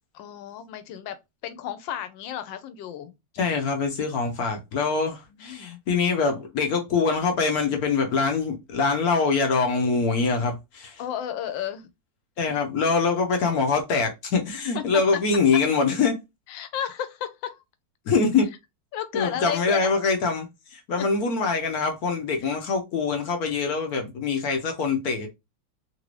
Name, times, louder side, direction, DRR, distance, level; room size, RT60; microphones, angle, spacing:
voice 1, 0.1-1.2 1.4-3.1 5.3-5.8 11.0-11.9 12.5-12.6 14.7-15.1 16.5-17.6 18.9-19.9 21.0-21.1 22.4-22.6, left 10 dB, 85° left, 1.3 m, -33 dB
voice 2, 3.4-11.0 12.4-16.2 18.1-18.5 19.1-20.5 20.7-25.3, left 4 dB, 65° left, 1.1 m, -24 dB
3.3 x 2.6 x 3.1 m
omnidirectional pair, 2.0 m